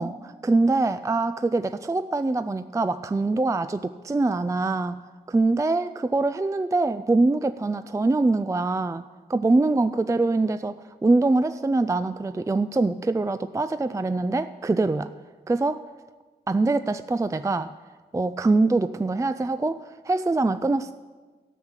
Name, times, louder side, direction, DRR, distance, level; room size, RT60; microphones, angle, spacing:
voice 1, 0.0-5.0 5.3-9.0 9.3-10.8 11.0-15.1 15.5-15.8 16.5-17.7 18.1-20.9, right 3 dB, 15° right, 11 dB, 0.3 m, -24 dB
13.5 x 5.7 x 8.0 m, 1.4 s
cardioid pair, 65°, 18 cm